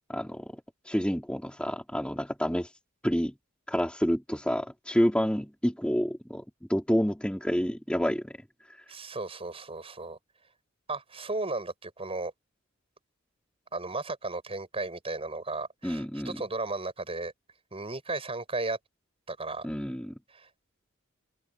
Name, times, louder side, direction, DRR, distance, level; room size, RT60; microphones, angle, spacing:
voice 1, 0.1-2.7 3.0-3.3 3.7-6.4 6.7-8.4 15.8-16.4 19.6-20.1, equal, 5° left, 4.4 m, -28 dB
voice 2, 8.9-10.2 10.9-12.3 13.7-17.3 17.7-18.8 19.3-19.7 20.3-20.5, right 3 dB, 30° right, 7.0 m, -35 dB
head